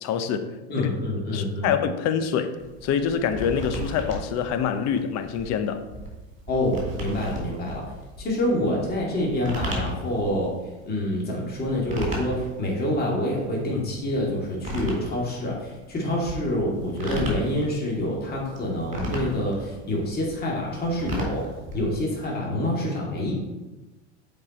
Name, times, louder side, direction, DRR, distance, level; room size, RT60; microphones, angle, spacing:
voice 1, 0.0-0.9 1.3-2.5 2.8-5.9, left 7 dB, 45° left, 0.8 m, -26 dB
voice 2, 0.7-1.7 6.5-7.8 8.2-10.5 10.9-21.5 21.7-23.3, left 1 dB, 25° left, 2.4 m, -27 dB
sound 1, 2.6-22.4, equal, 20° right, 2.6 m, -36 dB
7.5 x 4.7 x 4.3 m
supercardioid pair, 115°, 36 cm